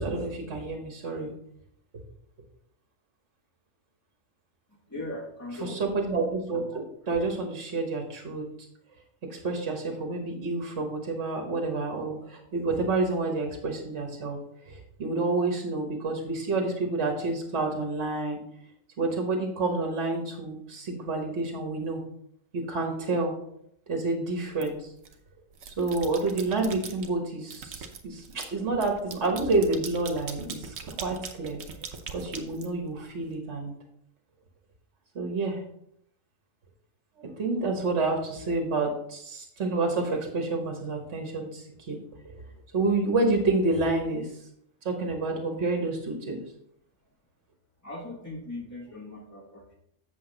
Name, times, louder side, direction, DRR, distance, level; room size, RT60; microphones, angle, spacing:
voice 1, 0.0-1.3 5.6-8.4 9.3-14.4 14.7-18.4 19.0-22.0 22.5-23.4 23.9-24.8 25.8-31.6 32.1-33.7 35.1-35.6 37.2-42.0 42.7-44.3 44.8-46.4, right 3 dB, 60° right, 2 dB, 1.6 m, -29 dB
voice 2, 4.9-5.8 47.8-49.7, left 2 dB, 15° left, -7 dB, 1.5 m, -39 dB
sound 1, 24.6-25.1 25.5-27.1 27.5-33.3, right 6 dB, 80° right, 1.3 m, -41 dB
7.8 x 7.0 x 3.9 m, 0.72 s
omnidirectional pair, 1.3 m